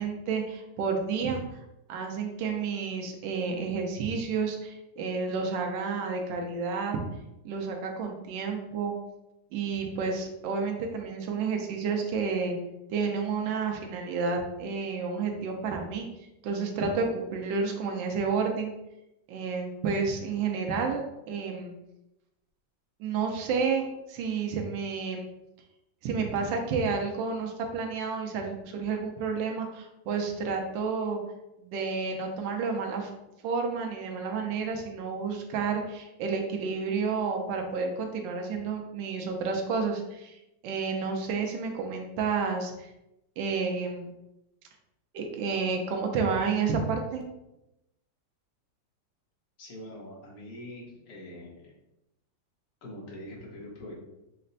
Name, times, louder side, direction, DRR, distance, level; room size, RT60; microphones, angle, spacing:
voice 1, 0.0-1.4 1.9-7.0 7.4-8.9 9.5-12.6 12.9-16.1 16.4-18.7 19.3-21.7 23.0-25.3 26.0-31.2 31.6-33.1 33.4-40.4 40.6-42.9 43.4-44.1 45.1-47.2, right 5 dB, 75° right, 3 dB, 1.3 m, -30 dB
voice 2, 49.6-51.7 52.8-53.9, left 1 dB, 55° left, -4 dB, 1.5 m, -43 dB
4.1 x 2.2 x 3.9 m, 0.89 s
omnidirectional pair, 2.1 m